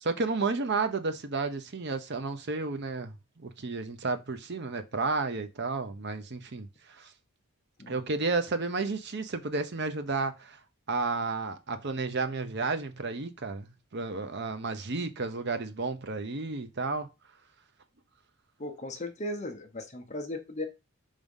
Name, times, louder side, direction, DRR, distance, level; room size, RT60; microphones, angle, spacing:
voice 1, 0.0-7.1 7.9-10.6 10.9-17.1, right 3 dB, 50° right, 0.7 m, -32 dB
voice 2, 18.6-20.7, left 1 dB, 30° left, 0.8 m, -37 dB
5.0 x 3.7 x 5.3 m
head